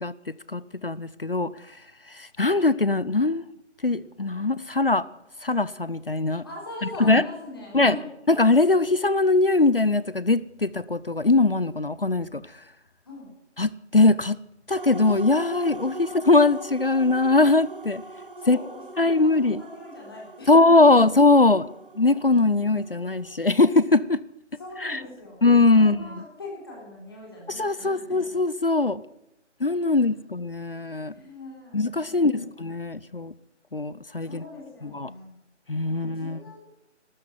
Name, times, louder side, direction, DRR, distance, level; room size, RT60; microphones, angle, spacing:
voice 1, 0.5-1.5 2.4-3.4 3.8-5.0 5.4-6.4 7.0-7.2 7.7-8.0 8.3-12.4 13.6-14.4 14.7-18.0 18.5-18.6 19.0-19.6 20.5-21.7 22.0-24.2 24.8-25.0 25.4-26.0 27.6-29.0 29.6-31.1 31.7-33.3 33.7-34.4 34.8-35.1 35.7-36.4, left 3 dB, 50° left, 18 dB, 0.5 m, -21 dB
voice 2, 6.4-8.1 13.1-13.3 18.4-20.9 24.6-25.4 25.7-28.4 29.8-30.0 31.1-31.8 32.1-32.4 34.2-35.4 35.9-36.6, left 2 dB, 20° left, -3 dB, 3.9 m, -41 dB
sound 1, 14.7-23.8, right 3 dB, 45° right, 1.0 m, -42 dB
13.0 x 13.0 x 7.5 m, 0.83 s
figure-of-eight pair, 180°, 36 cm